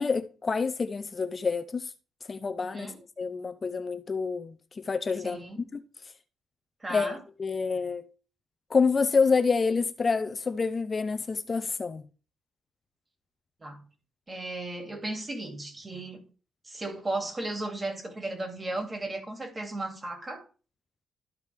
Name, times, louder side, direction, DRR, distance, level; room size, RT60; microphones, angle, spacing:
voice 1, 0.0-1.9 2.3-2.9 3.2-5.4 5.7-5.8 6.9-8.1 8.7-12.0, left 4 dB, 35° left, 0.6 m, -27 dB
voice 2, 2.6-3.0 5.2-5.6 6.8-7.2 13.6-13.8 14.3-16.2 16.7-20.4, right 2 dB, 25° right, 2.4 m, -35 dB
13.0 x 4.9 x 3.4 m
cardioid pair, 100°, 0 cm